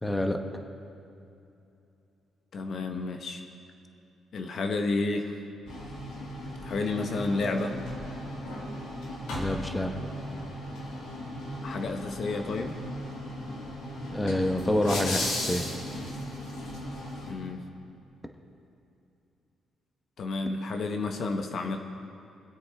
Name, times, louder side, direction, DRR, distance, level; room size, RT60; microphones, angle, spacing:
voice 1, 0.0-0.4 9.2-9.9 14.1-15.7, left 1 dB, 10° left, 5 dB, 1.0 m, -27 dB
voice 2, 2.5-3.4 4.3-5.3 6.6-7.8 11.6-12.7 17.3-17.6 20.2-21.8, left 3 dB, 55° left, 5 dB, 1.0 m, -31 dB
sound 1, 5.7-17.3, left 1 dB, 90° left, 2.5 m, -36 dB
24.0 x 8.2 x 3.4 m, 2.7 s
cardioid pair, 90°, 0 cm